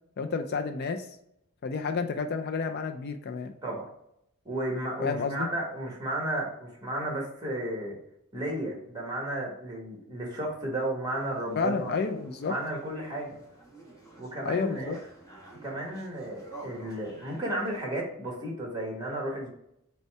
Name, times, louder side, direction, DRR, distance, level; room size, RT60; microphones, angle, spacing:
voice 1, 0.2-1.1 1.6-3.5 5.0-5.5 11.6-12.5 14.4-15.0, left 5 dB, 50° left, 6 dB, 0.4 m, -30 dB
voice 2, 4.4-7.9 8.3-11.9 12.5-13.4 14.2-15.0 15.6-19.5, right 1 dB, 20° right, -1 dB, 1.4 m, -33 dB
sound 1, 11.1-17.8, right 2 dB, 15° left, 1.2 m, -50 dB
5.4 x 2.2 x 4.5 m, 0.76 s
head